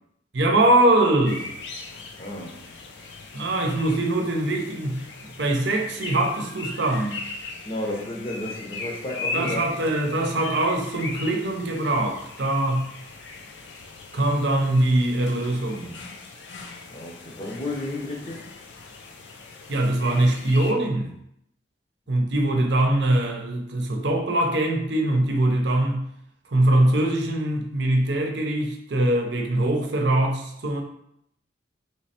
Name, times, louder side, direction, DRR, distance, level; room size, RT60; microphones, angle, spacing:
voice 1, 0.3-1.5 3.3-5.1 5.4-7.3 9.3-12.9 14.1-16.0 19.7-21.1 22.1-26.1 26.5-30.8, right 1 dB, 65° right, 0.7 m, -22 dB
sound 1, 1.3-20.7, left 4 dB, 70° left, 0.6 m, -39 dB
voice 2, 2.2-2.6 7.6-9.6 16.9-18.4, left 1 dB, 30° left, 0.7 m, -32 dB
3.3 x 3.2 x 4.3 m
head